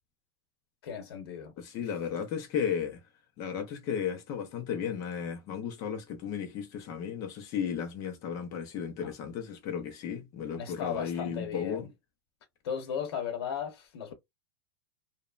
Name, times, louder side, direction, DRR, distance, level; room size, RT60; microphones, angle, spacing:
voice 1, 0.8-1.5 9.0-9.1 10.5-11.9 12.6-14.1, left 8 dB, 85° left, 0.9 m, -36 dB
voice 2, 1.6-3.0 3.4-11.9, left 7 dB, 25° left, 0.4 m, -34 dB
3.0 x 2.0 x 2.2 m
supercardioid pair, 180°, 13 cm